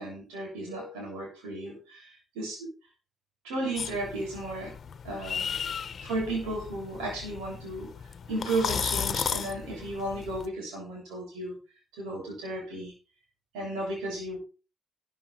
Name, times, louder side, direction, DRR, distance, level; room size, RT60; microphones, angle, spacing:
voice 1, 0.0-2.7 3.4-4.7 5.0-5.5 6.0-7.9 8.3-11.6 12.0-12.9 13.5-14.4, right 2 dB, 85° right, -1 dB, 7.3 m, -34 dB
sound 1, 3.8-10.5, left 7 dB, 55° left, 1.1 m, -35 dB
13.5 x 9.1 x 4.5 m, 0.33 s
hypercardioid pair, 50°, 0 cm